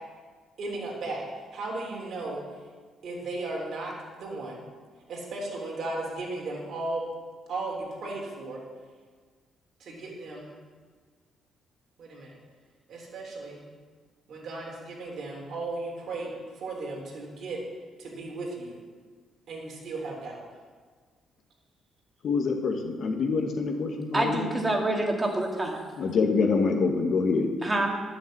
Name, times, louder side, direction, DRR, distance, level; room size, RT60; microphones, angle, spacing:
voice 1, 0.6-1.2 1.5-2.4 3.0-4.6 5.1-7.0 7.5-8.6 9.8-10.5 12.0-12.3 12.9-13.6 14.3-17.6 18.0-18.8 19.5-20.4, right 2 dB, 65° right, -2 dB, 3.4 m, -35 dB
voice 2, 22.2-24.5 26.0-27.5, left 4 dB, 60° left, 3 dB, 1.7 m, -25 dB
voice 3, 24.1-25.8 27.6-27.9, right 1 dB, 20° right, 1 dB, 2.3 m, -26 dB
10.5 x 7.1 x 7.5 m, 1.5 s
cardioid pair, 90°, 0 cm